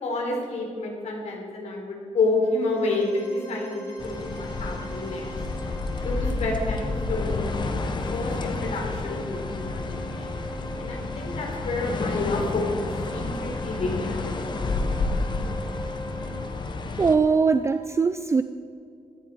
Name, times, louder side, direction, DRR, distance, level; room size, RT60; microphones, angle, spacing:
voice 1, 0.0-5.3 6.0-10.4 10.8-12.8 13.1-14.3, left 2 dB, 65° left, 0 dB, 4.0 m, -29 dB
sound 1, 2.3-16.4, right 1 dB, 20° left, 4.8 m, -40 dB
sound 2, 4.0-17.2, left 3 dB, 40° left, 1.1 m, -30 dB
sound 3, 12.8-17.8, right 11 dB, 50° right, 2.7 m, -52 dB
voice 2, 17.0-18.4, right 5 dB, 25° right, 11 dB, 0.4 m, -21 dB
17.0 x 14.5 x 4.7 m, 2.4 s
wide cardioid pair, 175°, 12 cm